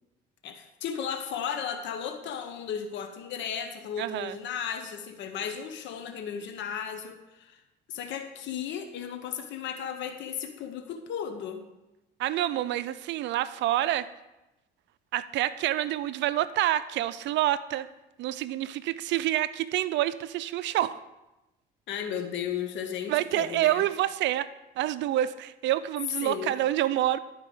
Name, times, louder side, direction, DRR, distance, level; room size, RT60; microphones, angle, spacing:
voice 1, 0.4-7.6 7.9-11.6 21.9-23.8 26.2-26.5, left 8 dB, 70° left, 7 dB, 0.9 m, -35 dB
voice 2, 4.0-4.4 12.2-14.1 15.1-17.9 18.2-21.0 23.1-24.5 24.8-27.2, right 13 dB, 70° right, 15 dB, 0.5 m, -27 dB
12.0 x 4.8 x 5.0 m, 0.99 s
supercardioid pair, 90°, 20 cm